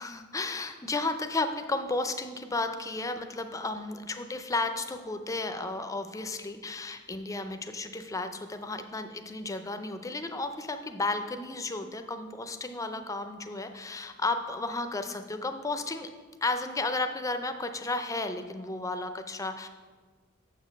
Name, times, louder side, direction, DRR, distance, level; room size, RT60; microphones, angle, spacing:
voice 1, 0.0-16.1 16.4-19.7, left 2 dB, 15° left, 8 dB, 0.5 m, -33 dB
7.2 x 5.1 x 6.6 m, 1.4 s
head